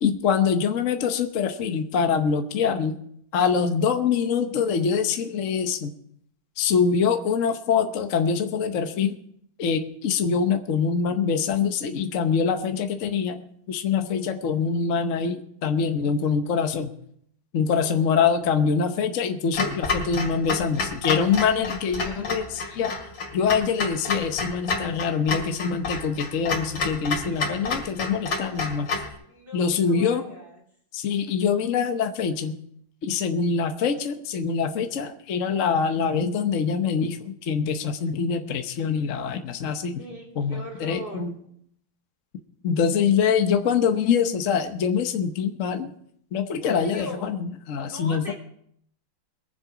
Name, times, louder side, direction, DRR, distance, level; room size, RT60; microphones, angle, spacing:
voice 1, 0.0-3.0 3.3-5.9 6.6-9.1 9.6-13.4 13.7-16.9 17.5-22.9 23.3-28.9 29.5-30.2 30.9-32.5 33.0-40.0 40.4-41.3 42.6-45.9 46.3-48.3, left 6 dB, 50° left, 6 dB, 1.0 m, -24 dB
voice 2, 17.6-18.1 21.3-22.6 29.3-30.6 39.9-41.5 46.6-47.3 47.9-48.3, equal, 25° right, -3 dB, 3.7 m, -41 dB
Clock, 19.5-29.1, left 4 dB, 80° left, 3.1 m, -30 dB
22.5 x 7.7 x 4.8 m, 0.69 s
omnidirectional pair, 2.1 m